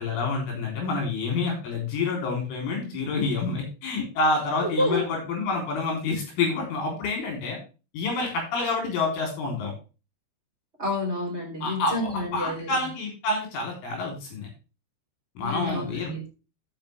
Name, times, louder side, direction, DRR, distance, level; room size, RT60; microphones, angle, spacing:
voice 1, 0.0-7.6 7.9-9.7 11.6-14.5 15.4-16.1, left 3 dB, 75° left, 1 dB, 6.0 m, -28 dB
voice 2, 4.6-5.1 10.8-12.8 15.4-16.3, left 1 dB, 15° right, -1 dB, 2.9 m, -29 dB
12.5 x 7.3 x 3.4 m, 0.32 s
omnidirectional pair, 5.7 m